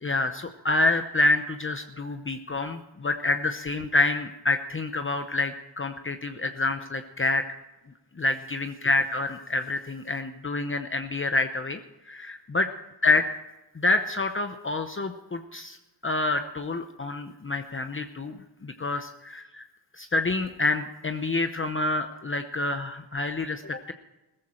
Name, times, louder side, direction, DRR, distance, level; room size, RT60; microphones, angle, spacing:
voice 1, 0.0-7.4 8.2-11.8 12.1-12.7 13.0-13.3 13.7-15.8 16.0-18.4 18.6-19.6 19.9-23.9, left 2 dB, 30° left, 7 dB, 0.8 m, -27 dB
16.5 x 14.5 x 4.4 m, 1.0 s
wide cardioid pair, 105°, 42 cm